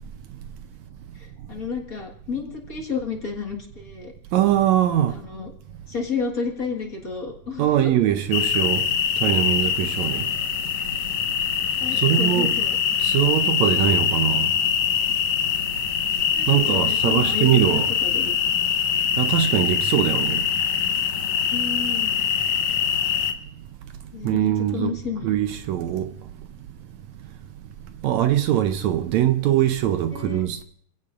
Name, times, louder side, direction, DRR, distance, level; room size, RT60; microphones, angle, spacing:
voice 1, 1.1-4.1 5.1-5.5 5.9-7.9 10.0-10.1 11.8-13.1 16.3-18.3 21.5-22.2 24.1-25.3 30.1-30.4, left 5 dB, 40° left, 1.4 m, -32 dB
voice 2, 4.3-5.2 7.6-8.9 9.2-10.3 12.0-12.6 13.0-14.5 16.5-17.9 19.2-20.4 24.2-25.0 25.2-26.1 28.0-30.6, right 11 dB, 75° right, 1.7 m, -22 dB
sound 1, 8.3-23.3, left 8 dB, 65° left, 2.0 m, -23 dB
27.5 x 16.0 x 2.5 m
omnidirectional pair, 3.8 m